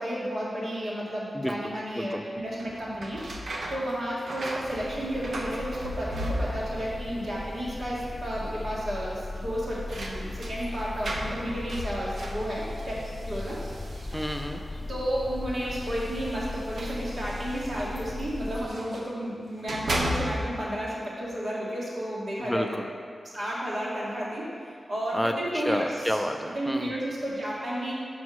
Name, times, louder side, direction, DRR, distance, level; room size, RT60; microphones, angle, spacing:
voice 1, 0.0-3.2 3.7-5.7 6.0-6.3 6.5-8.0 8.2-9.1 9.4-10.2 10.5-12.6 13.3-13.5 14.9-16.4 16.7-20.9 21.2-22.7 23.3-24.4 24.9-25.9 26.6-27.9, equal, 55° right, -6 dB, 1.8 m, -32 dB
sound 1, 2.5-6.9 7.2-7.8 8.1-8.2 9.3-14.7 15.6-19.1 19.5-20.7, equal, 70° right, 0.7 m, -36 dB
sound 2, 4.7-18.7, left 2 dB, 50° left, 0.7 m, -38 dB
voice 2, 14.1-14.6 22.4-22.9 25.1-26.9, equal, ahead, 4 dB, 0.5 m, -30 dB
5.2 x 4.8 x 6.0 m, 2.1 s
wide cardioid pair, 80°, 0 cm